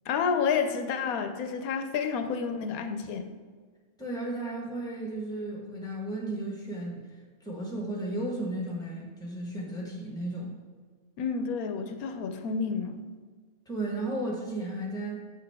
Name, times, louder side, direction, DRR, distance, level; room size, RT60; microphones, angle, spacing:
voice 1, 0.1-3.3 11.2-13.1, left 6 dB, 90° left, 8 dB, 1.1 m, -30 dB
voice 2, 4.0-7.1 7.4-10.6 13.7-15.2, right 1 dB, 5° left, -2 dB, 1.2 m, -34 dB
7.1 x 5.8 x 3.5 m, 1.5 s
omnidirectional pair, 1.5 m